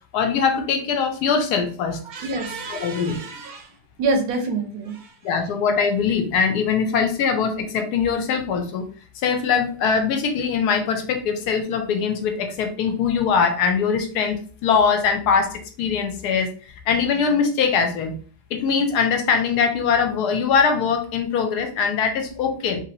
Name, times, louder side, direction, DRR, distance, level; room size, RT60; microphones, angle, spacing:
voice 1, 0.1-2.0 2.7-3.2 5.2-8.9 9.2-18.2 18.5-22.8, left 6 dB, 75° left, 6 dB, 1.1 m, -22 dB
voice 2, 2.1-3.7 4.0-5.1, right 3 dB, 70° right, 4 dB, 1.0 m, -27 dB
3.1 x 2.7 x 2.8 m, 0.40 s
omnidirectional pair, 1.9 m